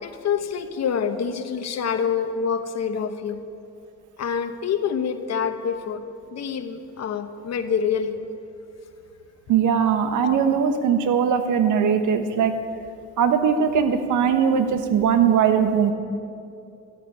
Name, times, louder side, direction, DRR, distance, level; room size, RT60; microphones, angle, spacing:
voice 1, 0.0-3.4 4.2-6.0 6.3-8.3 10.2-10.4, left 7 dB, 60° left, 8 dB, 1.1 m, -26 dB
voice 2, 9.5-12.5 13.2-15.9, right 7 dB, 85° right, 8 dB, 1.2 m, -20 dB
13.0 x 8.4 x 9.8 m, 2.6 s
cardioid pair, 90°, 30 cm